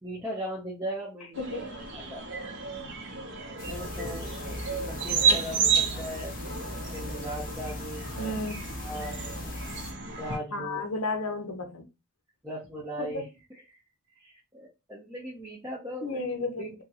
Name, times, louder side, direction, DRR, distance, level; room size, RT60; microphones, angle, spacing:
voice 1, 0.0-1.7 1.9-2.2 3.1-3.2 3.6-4.3 4.7-6.3 6.9-8.4 8.8-9.2 10.2-10.8 12.4-13.3 13.7-13.8 14.2-16.2 16.6-16.7, equal, 10° right, 0.7 m, -38 dB
sound 1, 1.3-10.4, right 5 dB, 55° right, 0.7 m, -31 dB
voice 2, 1.4-1.8 5.3-5.5 8.2-8.6 10.5-11.8 13.0-13.2 16.0-16.7, left 2 dB, 70° left, 0.8 m, -33 dB
sound 2, 3.6-9.9, left 2 dB, 40° left, 0.5 m, -39 dB
3.6 x 2.2 x 2.8 m
head